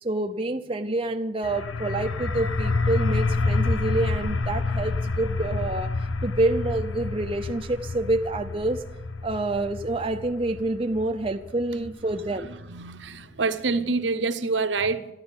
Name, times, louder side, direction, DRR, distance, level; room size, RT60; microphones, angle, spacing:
voice 1, 0.0-5.9 6.2-8.8 9.2-12.5, right 2 dB, 30° right, 0.6 m, -27 dB
sound 1, 1.4-12.9, left 3 dB, 90° left, 0.8 m, -28 dB
voice 2, 12.7-15.1, right 4 dB, 65° right, 0.8 m, -26 dB
12.0 x 11.5 x 8.8 m
head